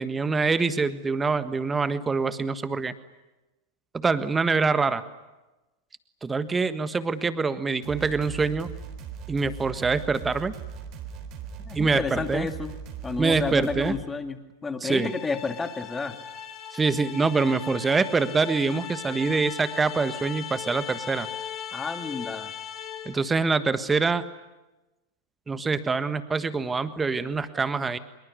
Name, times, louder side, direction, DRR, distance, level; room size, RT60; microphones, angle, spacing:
voice 1, 0.0-2.9 3.9-5.0 6.2-8.7 9.3-10.5 11.7-12.5 13.2-13.9 14.8-15.1 16.7-21.3 23.0-24.2 25.5-28.0, right 4 dB, 15° right, 13 dB, 1.5 m, -25 dB
sound 1, 7.8-14.0, right 7 dB, 35° right, 3.8 m, -39 dB
voice 2, 11.7-12.7 13.0-16.2 21.7-22.5, left 4 dB, 15° left, 8 dB, 2.2 m, -31 dB
sound 2, 14.9-23.3, left 8 dB, 30° left, 3.1 m, -38 dB
25.0 x 23.0 x 9.7 m, 1.1 s
figure-of-eight pair, 90°, 0 cm